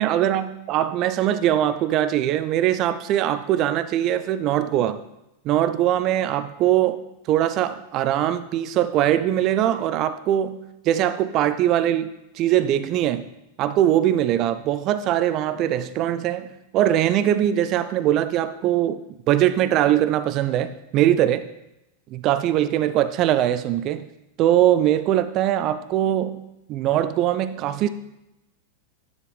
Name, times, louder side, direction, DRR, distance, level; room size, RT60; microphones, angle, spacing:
voice 1, 0.0-5.0 5.5-10.6 10.9-12.1 12.4-13.3 13.6-16.5 16.7-19.0 19.3-21.4 22.1-24.1 24.4-26.4 26.7-27.9, right 12 dB, 35° right, 12 dB, 0.3 m, -21 dB
9.8 x 4.0 x 3.4 m, 0.90 s
figure-of-eight pair, 90°, 0 cm